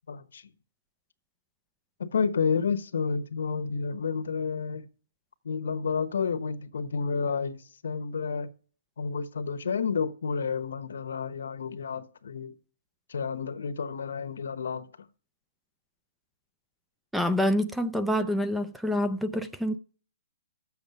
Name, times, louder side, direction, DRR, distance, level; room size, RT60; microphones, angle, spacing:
voice 1, 0.1-0.5 2.0-4.9 5.4-8.5 9.0-12.5 13.1-15.1, left 5 dB, 85° left, 1.0 m, -30 dB
voice 2, 17.1-19.8, equal, ahead, 0.4 m, -27 dB
7.2 x 7.1 x 8.0 m
hypercardioid pair, 175°, 0 cm